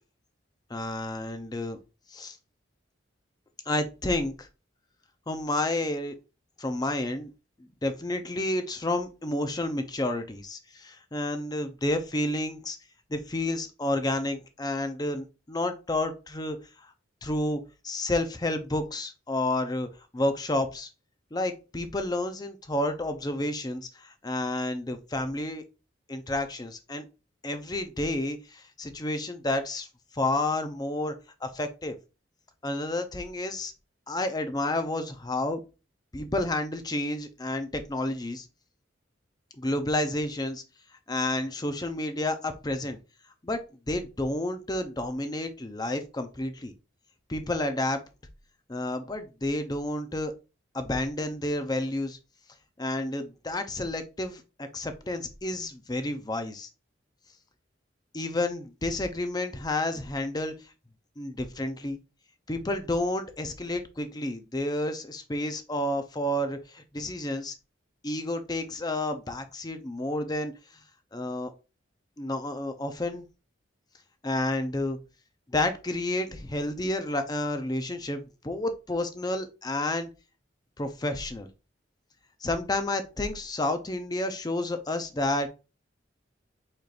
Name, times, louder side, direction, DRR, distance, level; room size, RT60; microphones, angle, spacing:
voice 1, 0.7-1.8 2.1-2.4 3.7-4.5 5.3-6.1 6.6-7.3 7.8-12.8 13.1-16.9 17.2-19.9 20.1-20.9 21.3-25.6 26.1-27.0 27.4-29.9 30.1-31.1 31.4-32.0 32.6-33.7 34.1-35.6 36.1-38.5 39.6-40.6 41.1-43.0 43.4-43.6 43.9-46.7 47.3-48.0 48.7-50.3 50.7-52.2 52.8-56.7 58.1-60.5 61.2-62.0 62.5-67.5 68.0-70.5 71.1-71.5 72.2-73.2 74.2-75.0 75.5-80.1 80.8-81.5 82.4-85.5, left 1 dB, 20° left, 8 dB, 0.6 m, -30 dB
4.9 x 4.3 x 2.5 m, 0.29 s
head